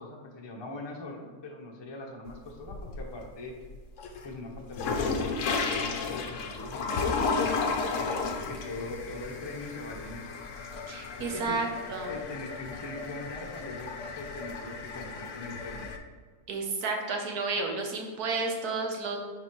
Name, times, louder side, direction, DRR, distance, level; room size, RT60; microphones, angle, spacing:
voice 1, 0.0-3.6 4.2-8.2 8.5-10.3 11.3-11.5 12.0-15.9, left 2 dB, 20° left, 0 dB, 0.7 m, -42 dB
sound 1, 2.3-3.2 3.6-16.0, left 4 dB, 60° left, 0.9 m, -33 dB
voice 2, 10.9-12.2 16.5-19.2, right 3 dB, 70° right, 2 dB, 1.5 m, -31 dB
10.0 x 4.3 x 3.1 m, 1.5 s
omnidirectional pair, 1.7 m